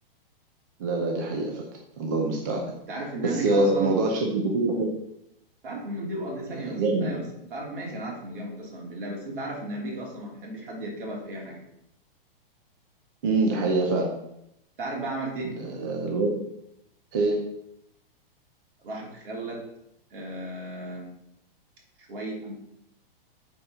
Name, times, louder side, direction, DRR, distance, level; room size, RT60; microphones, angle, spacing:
voice 1, 0.8-1.6 2.0-2.6 3.2-4.9 6.5-7.1 13.2-14.1 15.5-16.4 17.1-17.4, right 2 dB, 20° right, 1 dB, 0.5 m, -25 dB
voice 2, 2.9-4.2 5.6-7.2 7.5-11.6 14.8-15.5 18.8-19.6 20.1-21.1 22.1-22.5, right 1 dB, 60° right, -2 dB, 3.2 m, -34 dB
8.5 x 4.5 x 5.4 m, 0.81 s
hypercardioid pair, 180°, 29 cm